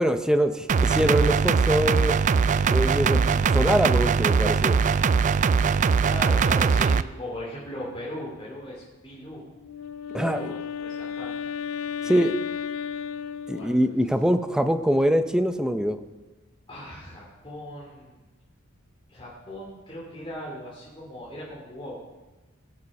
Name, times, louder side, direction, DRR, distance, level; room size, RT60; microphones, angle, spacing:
voice 1, 0.0-2.2 2.7-4.8 10.1-10.6 12.0-12.3 13.5-16.0, equal, 5° right, 8 dB, 0.7 m, -23 dB
sound 1, 0.7-7.0, right 5 dB, 35° right, 0.3 m, -21 dB
voice 2, 6.0-9.4 10.2-11.3 12.0-12.4 13.5-13.7 16.7-18.2 19.1-22.0, left 1 dB, 25° left, -6 dB, 2.8 m, -38 dB
Wind instrument woodwind instrument, 9.6-14.1, left 7 dB, 80° left, 0.4 m, -34 dB
20.5 x 7.2 x 5.3 m, 1.2 s
head